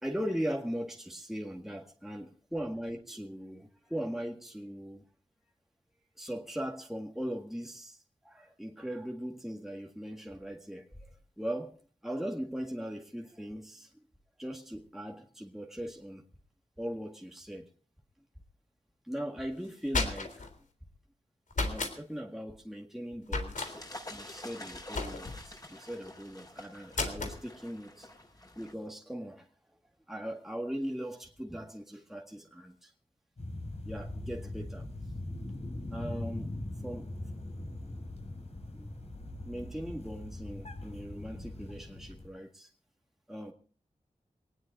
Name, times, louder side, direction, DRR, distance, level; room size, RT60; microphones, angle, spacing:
voice 1, 0.0-5.0 6.2-11.8 12.0-13.9 14.4-16.2 16.8-17.7 19.0-20.5 21.6-23.8 24.1-28.1 28.6-29.5 30.1-32.9 33.8-34.9 35.9-36.5 36.8-37.1 38.7-38.9 39.4-42.7 43.3-43.5, equal, 5° right, 1.8 m, -39 dB
sound 1, 19.6-20.5 21.5-22.0 23.3-23.7 24.9-25.5 26.9-27.4, left 3 dB, 85° left, 3.5 m, -33 dB
sound 2, 23.6-28.7, left 1 dB, 30° left, 6.2 m, -47 dB
sound 3, 33.4-42.3, left 1 dB, 55° left, 6.2 m, -41 dB
24.0 x 19.0 x 2.7 m
wide cardioid pair, 80°, 13 cm